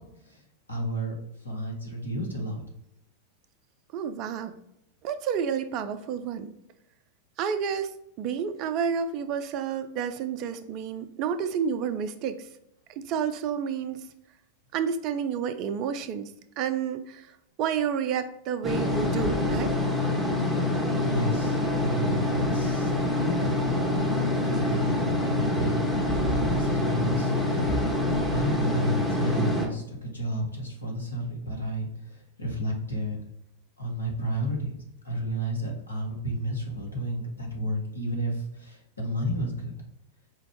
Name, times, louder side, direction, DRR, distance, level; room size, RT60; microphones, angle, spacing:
voice 1, 0.7-1.1 1.4-2.6 21.0-22.9 23.2-23.6 24.4-25.0 25.2-25.7 26.2-27.7 27.9-33.2 33.8-34.7 35.0-39.7, right 1 dB, 80° left, -1 dB, 1.0 m, -31 dB
voice 2, 3.9-4.6 5.0-6.5 7.4-12.5 13.0-14.0 14.7-16.3 16.6-17.3 17.6-19.7, right 7 dB, 40° right, 10 dB, 0.3 m, -30 dB
sound 1, 18.6-29.7, left 2 dB, ahead, 1.0 m, -26 dB
4.5 x 2.5 x 3.4 m, 0.80 s
figure-of-eight pair, 90°, 0 cm